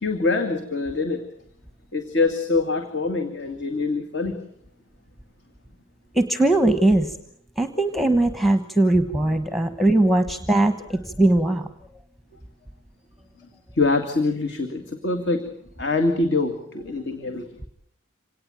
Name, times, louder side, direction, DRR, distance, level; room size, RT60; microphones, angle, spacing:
voice 1, 0.0-1.2 1.9-4.4 13.7-15.4 15.8-17.5, left 3 dB, 55° left, 5 dB, 2.3 m, -24 dB
voice 2, 6.1-7.2 7.6-11.7, right 2 dB, ahead, 9 dB, 1.1 m, -20 dB
26.5 x 18.5 x 9.1 m, 0.69 s
head